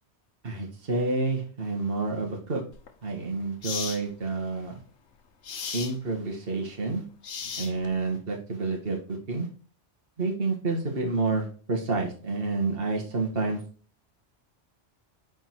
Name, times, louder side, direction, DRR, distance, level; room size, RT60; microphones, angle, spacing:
voice 1, 0.4-2.6 3.0-4.8 5.5-7.0 7.6-9.0 9.3-9.5 10.2-13.6, right 3 dB, 50° right, 1 dB, 1.9 m, -29 dB
sound 1, 2.7-2.9 3.6-4.0 5.4-6.0 7.2-8.0, left 6 dB, 70° left, 1.3 m, -35 dB
9.6 x 4.4 x 4.6 m, 0.40 s
omnidirectional pair, 1.2 m